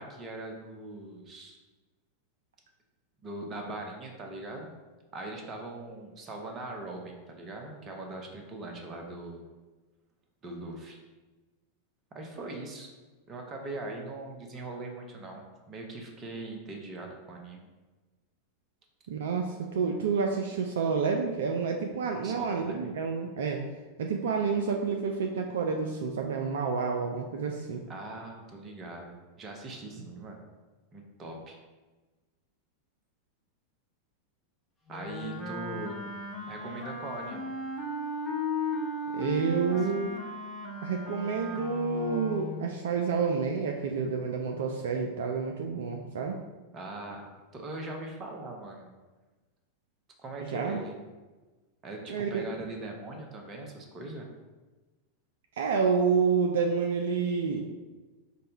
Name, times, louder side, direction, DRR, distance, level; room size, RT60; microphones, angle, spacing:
voice 1, 0.0-1.6 3.2-4.7 5.1-9.4 10.4-11.0 12.1-12.9 13.3-17.7 22.2-22.9 27.9-30.4 30.9-31.6 34.9-36.0 36.5-37.5 39.8-40.0 46.7-48.9 50.2-51.0 51.8-54.3, right 2 dB, 30° right, 2 dB, 0.8 m, -41 dB
voice 2, 19.1-23.6 24.0-27.8 39.1-40.2 40.8-46.4 50.5-50.8 52.1-52.4 55.6-57.7, right 5 dB, 60° right, 2 dB, 0.3 m, -29 dB
Wind instrument woodwind instrument, 34.9-42.7, left 2 dB, 20° left, 0.7 m, -36 dB
5.2 x 2.2 x 4.0 m, 1.2 s
figure-of-eight pair, 90°, 0 cm